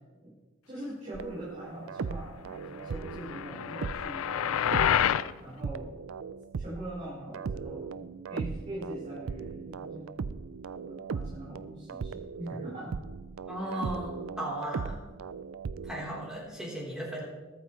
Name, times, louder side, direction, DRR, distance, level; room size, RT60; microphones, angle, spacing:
voice 1, 0.7-5.0 5.4-5.9 6.5-10.3 10.8-12.9 13.6-13.9, right 1 dB, 35° right, -8 dB, 4.3 m, -42 dB
sound 1, 1.1-5.3 5.6-16.3, right 5 dB, 70° right, 0.4 m, -39 dB
sound 2, 3.0-5.3, left 9 dB, 80° left, 0.4 m, -28 dB
voice 2, 13.5-15.0 15.8-17.2, right 1 dB, 5° right, -5 dB, 3.8 m, -36 dB
21.5 x 9.2 x 3.2 m, 1.3 s
head